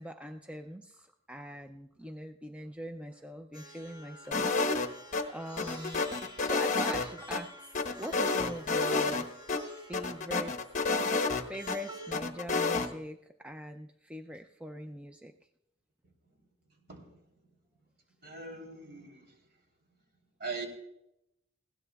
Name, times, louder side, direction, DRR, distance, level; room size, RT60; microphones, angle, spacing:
voice 1, 0.0-5.0 5.3-6.1 6.4-9.3 9.7-10.6 11.5-15.3, equal, 5° right, 6 dB, 0.4 m, -42 dB
Plucked string instrument, 3.5-12.1, right 1 dB, 25° right, 2.5 m, -49 dB
sound 1, 4.3-5.2 5.6-7.4 7.7-9.2 9.5-9.6 9.9-11.8 12.1-12.9, left 3 dB, 40° left, 1.0 m, -29 dB
voice 2, 18.2-19.3 20.4-20.7, right 4 dB, 55° right, 2 dB, 3.3 m, -40 dB
20.5 x 16.5 x 2.3 m, 0.84 s
head